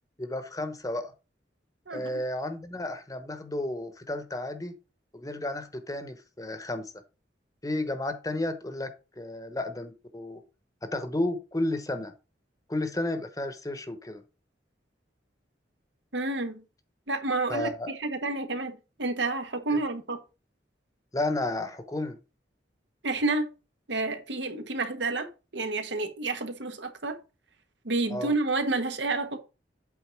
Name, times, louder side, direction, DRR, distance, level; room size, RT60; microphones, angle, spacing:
voice 1, 0.2-1.1 1.9-4.7 5.1-6.9 7.6-8.9 9.2-10.4 10.8-12.1 12.7-14.2 17.5-17.9 19.7-19.8 21.1-22.2 28.1-28.3, left 1 dB, 20° left, 1.0 m, -32 dB
voice 2, 1.9-2.2 16.1-16.6 17.1-20.2 23.0-23.5 23.9-27.2 27.8-29.4, right 3 dB, 80° right, 1.5 m, -30 dB
8.3 x 4.0 x 5.9 m
head